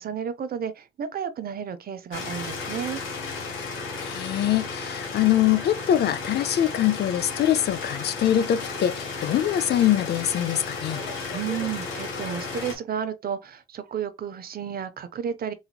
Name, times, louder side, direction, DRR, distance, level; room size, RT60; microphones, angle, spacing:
voice 1, 0.0-3.0 10.9-15.5, right 8 dB, 50° right, 0.6 m, -32 dB
sound 1, 2.1-12.8, left 4 dB, 80° left, 1.2 m, -34 dB
voice 2, 4.0-11.0, left 11 dB, 55° left, 0.4 m, -23 dB
4.0 x 2.9 x 2.2 m
cardioid pair, 90°, 20 cm